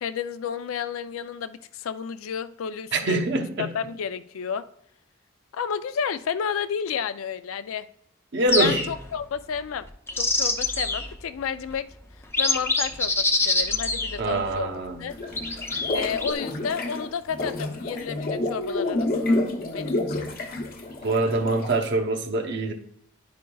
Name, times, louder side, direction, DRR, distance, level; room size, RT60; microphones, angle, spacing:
voice 1, 0.0-3.3 3.6-4.7 5.5-7.9 8.6-9.9 10.2-11.9 12.4-14.7 15.0-15.1 15.9-19.4 19.7-20.3, left 7 dB, 85° left, 0.4 m, -31 dB
voice 2, 2.9-3.7 8.3-8.8 14.2-15.0 21.0-22.7, right 2 dB, 60° right, 0.8 m, -24 dB
sound 1, 8.5-9.1 9.9-11.1 11.7-11.8 12.2-14.6 15.4-16.3, left 3 dB, 10° left, 0.5 m, -25 dB
sound 2, 15.1-21.9, left 2 dB, 45° left, 0.9 m, -29 dB
10.0 x 5.2 x 2.3 m
head